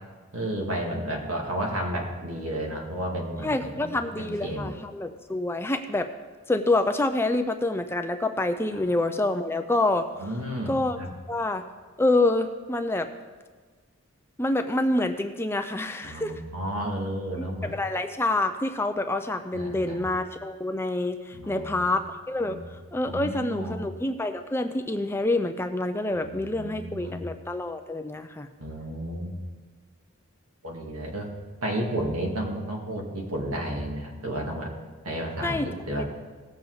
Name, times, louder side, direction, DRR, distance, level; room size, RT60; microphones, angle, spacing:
voice 1, 0.3-4.7 8.7-8.8 10.2-11.1 16.0-17.7 19.5-20.0 21.3-21.9 22.4-22.6 23.1-23.8 26.1-27.2 28.6-29.3 30.6-31.3 31.6-34.7 35.0-36.0, right 1 dB, 85° right, 0 dB, 2.1 m, -32 dB
voice 2, 3.4-6.1 6.5-10.1 10.7-11.0 11.3-11.6 12.0-13.1 14.4-16.3 17.3-22.6 22.9-28.5 35.4-35.7 36.0-36.1, left 2 dB, 10° left, 7 dB, 0.4 m, -27 dB
18.0 x 7.3 x 3.9 m, 1.4 s
head